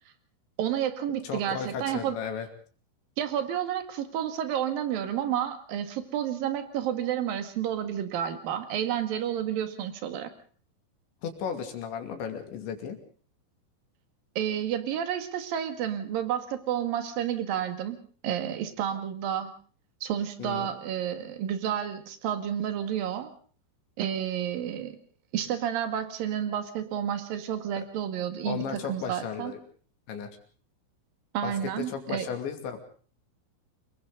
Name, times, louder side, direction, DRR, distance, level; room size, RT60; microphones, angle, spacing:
voice 1, 0.6-2.2 3.2-10.3 14.4-18.0 18.2-19.5 20.0-23.3 24.0-25.0 25.3-29.5 31.3-32.3, right 10 dB, 55° right, 8 dB, 3.1 m, -30 dB
voice 2, 1.2-2.5 11.2-13.0 20.4-20.7 28.4-29.6 30.1-30.3 31.4-32.8, left 7 dB, 65° left, 5 dB, 4.8 m, -35 dB
29.5 x 22.0 x 4.0 m, 0.42 s
omnidirectional pair, 5.9 m